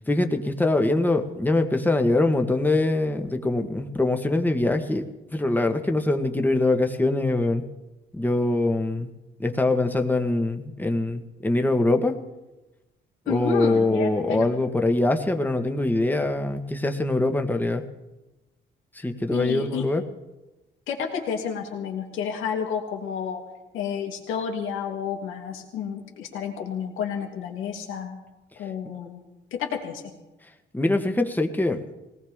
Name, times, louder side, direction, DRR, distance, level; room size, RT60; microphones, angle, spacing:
voice 1, 0.1-7.7 8.1-9.1 9.4-12.2 13.3-17.9 18.9-20.0 30.7-31.8, left 2 dB, 10° left, 6 dB, 1.5 m, -23 dB
voice 2, 13.3-14.5 19.3-19.9 20.9-23.4 23.7-28.2 28.6-29.2 29.5-30.0, left 7 dB, 90° left, 1 dB, 2.7 m, -30 dB
21.0 x 18.0 x 3.7 m, 1.1 s
cardioid pair, 90°, 20 cm